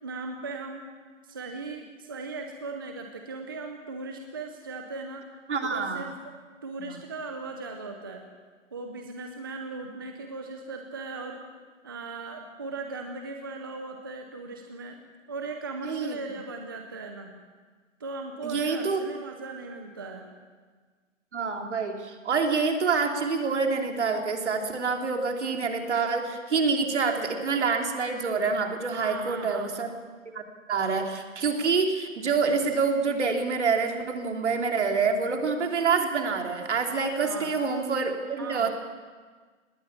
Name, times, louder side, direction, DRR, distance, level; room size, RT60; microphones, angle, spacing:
voice 1, 0.0-0.9 1.2-5.3 5.6-6.3 6.6-8.3 8.7-11.4 11.8-15.0 15.3-17.3 18.0-20.3 28.9-29.7 37.2-37.5 38.4-38.7, right 3 dB, 15° right, 4 dB, 0.7 m, -38 dB
voice 2, 5.5-6.1 15.8-16.2 18.4-19.0 21.3-29.9 30.3-30.4 30.7-38.7, right 5 dB, 60° right, 3 dB, 3.0 m, -27 dB
19.5 x 18.5 x 7.2 m, 1.5 s
hypercardioid pair, 170°, 39 cm